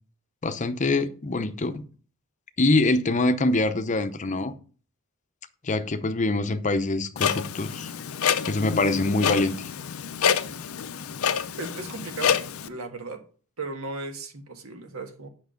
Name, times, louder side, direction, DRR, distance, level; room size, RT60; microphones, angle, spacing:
voice 1, 0.4-1.8 2.6-4.5 5.6-7.9 8.5-9.7, left 2 dB, 35° left, 0.7 m, -24 dB
Clock, 7.2-12.7, left 7 dB, 70° left, 0.6 m, -27 dB
voice 2, 11.6-12.4 12.7-13.2 13.6-15.3, right 3 dB, 70° right, 1.5 m, -36 dB
8.3 x 6.0 x 5.1 m
head